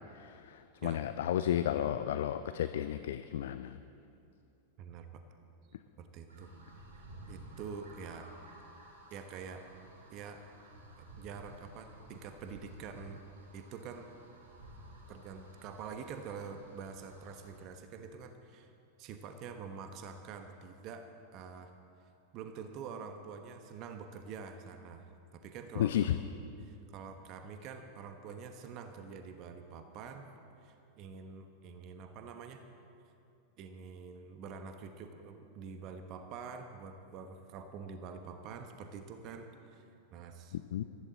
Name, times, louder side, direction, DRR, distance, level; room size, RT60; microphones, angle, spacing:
voice 1, 0.1-3.8 25.8-26.2 40.5-40.8, left 11 dB, 60° left, 11 dB, 0.5 m, -33 dB
voice 2, 4.8-5.2 6.0-6.5 7.3-8.3 9.1-9.7 10.1-10.5 11.0-13.3 13.5-14.1 15.1-18.7 19.0-21.7 22.3-25.9 26.6-30.3 30.6-32.7 33.6-39.8 40.1-40.6, right 6 dB, 40° right, 7 dB, 1.1 m, -46 dB
sound 1, 6.3-17.5, right 1 dB, 65° right, 4.3 m, -54 dB
23.0 x 15.0 x 4.0 m, 2.6 s
figure-of-eight pair, 90°, 0 cm